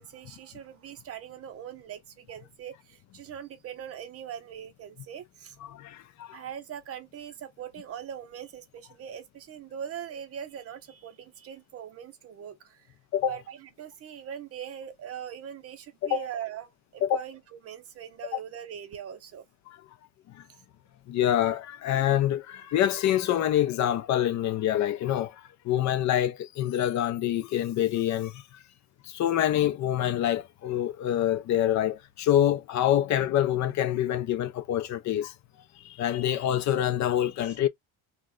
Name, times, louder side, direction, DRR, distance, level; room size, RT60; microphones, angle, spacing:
voice 1, 0.0-5.6 6.3-12.9 13.3-19.4, right 9 dB, 35° right, 0.6 m, -41 dB
voice 2, 5.6-6.4 13.1-13.3 16.0-16.2 17.0-17.2 18.3-18.4 19.7-19.8 20.3-20.4 21.1-28.4 29.0-35.3 35.8-37.7, left 11 dB, 45° left, 0.4 m, -26 dB
3.1 x 2.2 x 3.7 m
cardioid pair, 175°, 43 cm